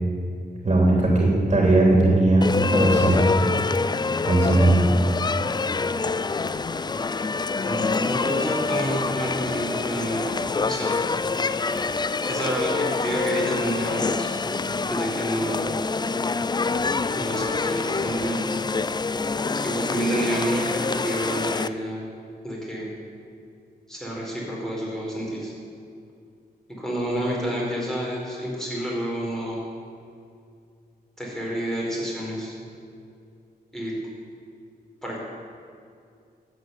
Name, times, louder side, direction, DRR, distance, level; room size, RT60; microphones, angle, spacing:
voice 1, 0.6-3.3 4.2-4.8, right 2 dB, 35° right, -2 dB, 3.2 m, -18 dB
sound 1, 2.4-21.7, left 4 dB, 25° left, 0.4 m, -26 dB
voice 2, 7.6-10.3 10.6-11.0 12.3-14.3 14.9-15.7 17.1-18.5 19.6-22.0 22.4-22.9 23.9-25.5 26.8-29.6 31.2-32.6 33.7-33.9 35.0-35.2, equal, 5° left, -4 dB, 4.5 m, -29 dB
13.0 x 8.3 x 9.4 m, 2.4 s
wide cardioid pair, 110°, 17 cm